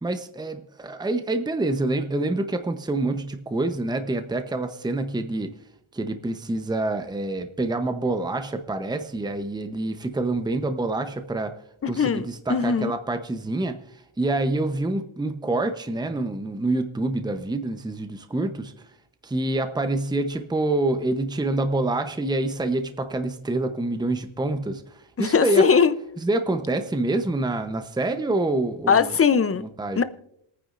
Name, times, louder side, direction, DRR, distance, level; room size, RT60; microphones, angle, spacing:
voice 1, 0.0-5.5 5.9-11.5 11.9-18.7 19.2-25.6 26.2-29.1 29.6-30.0, right 2 dB, 10° right, 0.8 m, -27 dB
voice 2, 11.8-12.2 12.5-12.9 25.2-25.9 28.9-29.6 30.0-30.1, left 6 dB, 30° left, 0.7 m, -20 dB
27.0 x 9.6 x 2.5 m
cardioid pair, 90°, 48 cm